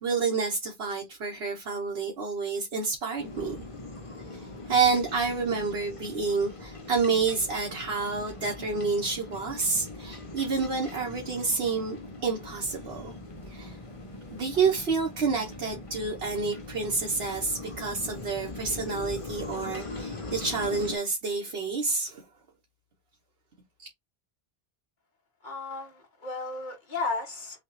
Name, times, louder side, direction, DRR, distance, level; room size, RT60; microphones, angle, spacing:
voice 1, 0.0-3.6 4.3-12.0 12.2-13.1 13.5-13.8 14.3-22.2, right 4 dB, 85° right, 1.3 m, -29 dB
sound 1, 3.2-21.0, left 2 dB, 35° left, 0.9 m, -41 dB
voice 2, 25.4-27.6, left 3 dB, 50° left, 1.6 m, -34 dB
6.3 x 2.4 x 3.1 m
omnidirectional pair, 1.0 m